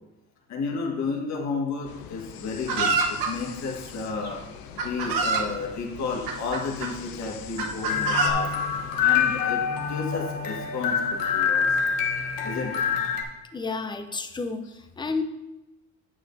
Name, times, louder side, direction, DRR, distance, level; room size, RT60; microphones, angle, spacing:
voice 1, 0.5-4.4 4.8-9.6 9.9-11.9 12.4-12.8 14.6-14.7, left 4 dB, 50° left, 0 dB, 1.6 m, -32 dB
sound 1, 1.8-9.5, left 7 dB, 85° left, 0.8 m, -43 dB
Chicken rooster, 2.7-3.3 4.2-4.3 4.8-5.5 6.3-6.9 7.6-8.3, right 4 dB, 75° right, 1.1 m, -25 dB
sound 2, 7.9-13.2, left 7 dB, 70° left, 1.2 m, -25 dB
voice 2, 13.5-15.2, left 4 dB, 15° left, 7 dB, 0.5 m, -31 dB
9.6 x 8.4 x 2.7 m, 1.0 s
cardioid pair, 145°, 34 cm